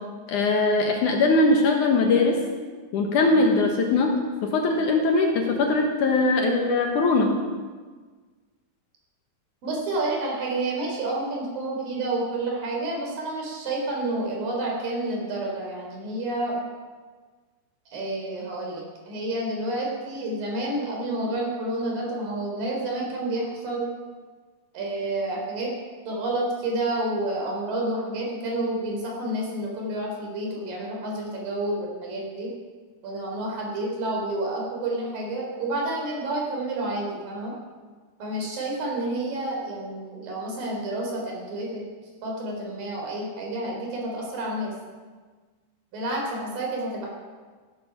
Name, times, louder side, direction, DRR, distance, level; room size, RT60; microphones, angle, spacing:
voice 1, 0.3-2.4 2.9-4.1 4.4-7.3, left 3 dB, 65° left, 2 dB, 2.6 m, -21 dB
voice 2, 9.6-16.6 17.9-23.9 24.7-25.8 26.1-32.5 33.0-37.5 38.2-41.8 42.2-44.7 45.9-47.1, right 2 dB, 65° right, -1 dB, 5.2 m, -29 dB
14.5 x 12.5 x 5.8 m, 1.4 s
omnidirectional pair, 4.3 m